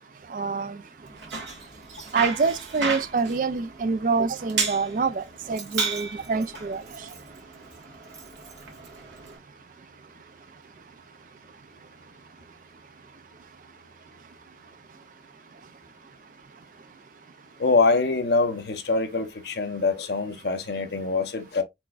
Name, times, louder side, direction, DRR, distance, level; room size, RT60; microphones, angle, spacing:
voice 1, 0.3-0.8 2.1-6.8, right 4 dB, 45° right, 0.3 m, -26 dB
Bicycle, 1.0-9.4, right 4 dB, 80° right, 1.6 m, -34 dB
voice 2, 17.6-21.6, left 3 dB, 65° left, 0.8 m, -24 dB
4.5 x 4.2 x 2.4 m
head